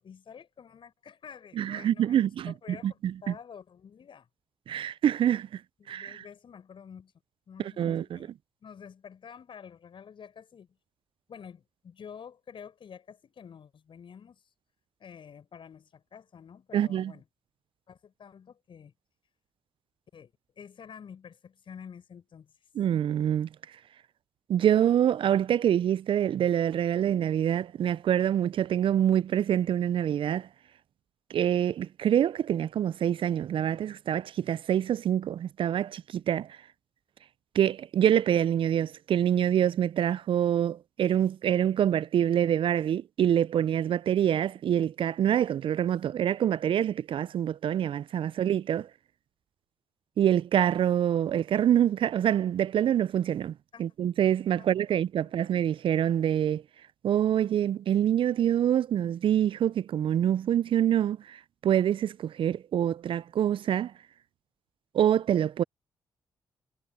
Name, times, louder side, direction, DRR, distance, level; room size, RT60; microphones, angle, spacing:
voice 1, 0.0-4.3 5.8-7.1 7.5-8.3 8.6-10.7 11.3-14.4 15.0-17.3 17.9-18.9 20.1-22.5 53.7-53.8 54.6-55.3, left 7 dB, 55° left, 6.9 m, -49 dB
voice 2, 1.6-3.3 4.7-5.6 5.9-6.2 7.6-8.2 16.7-17.1 22.8-23.5 24.5-30.5 31.3-36.5 37.5-48.9 50.2-53.5 53.8-56.6 57.0-63.9 64.9-65.6, right 10 dB, 60° right, 0.5 m, -26 dB
hypercardioid pair, 40°, 10 cm